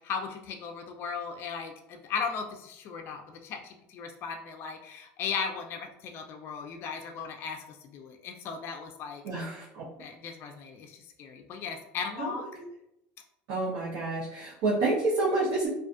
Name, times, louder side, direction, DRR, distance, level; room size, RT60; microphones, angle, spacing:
voice 1, 0.0-9.2 10.0-12.4, left 6 dB, 50° left, 3 dB, 0.4 m, -37 dB
voice 2, 9.2-9.8 12.2-12.3 12.6-12.7 13.5-15.7, right 2 dB, 70° right, -7 dB, 0.8 m, -28 dB
2.4 x 2.4 x 2.3 m, 0.82 s
supercardioid pair, 115°, 5 cm